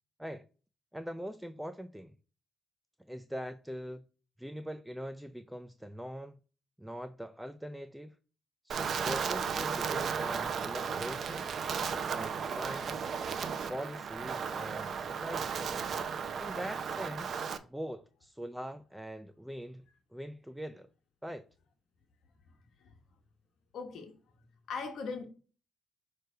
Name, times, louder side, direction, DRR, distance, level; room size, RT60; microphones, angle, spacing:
voice 1, 0.9-2.2 3.1-4.0 4.4-6.4 6.8-8.2 8.6-11.5 11.9-13.1 13.7-15.6 16.2-19.8 20.1-20.9 21.2-21.4, equal, 5° right, 0.4 m, -42 dB
Wind, 8.7-17.6, right 6 dB, 55° right, 0.7 m, -35 dB
voice 2, 23.7-25.3, left 4 dB, 70° left, 1.2 m, -42 dB
6.7 x 3.2 x 4.5 m
cardioid pair, 90°, 0 cm